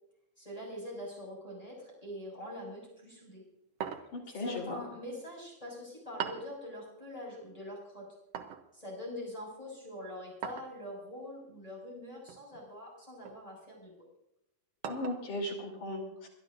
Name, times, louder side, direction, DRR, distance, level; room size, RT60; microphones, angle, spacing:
voice 1, 0.4-3.4 4.4-8.1 8.7-13.9, left 1 dB, 10° left, -3 dB, 6.0 m, -44 dB
sound 1, 3.8-4.3 6.2-6.6 8.3-8.7 10.4-10.8 12.3-12.6 13.2-13.4 14.8-15.3, right 8 dB, 65° right, 1.6 m, -40 dB
voice 2, 4.1-4.8 14.9-16.3, left 1 dB, 70° left, -1 dB, 4.8 m, -37 dB
28.5 x 12.0 x 2.6 m, 0.83 s
omnidirectional pair, 3.8 m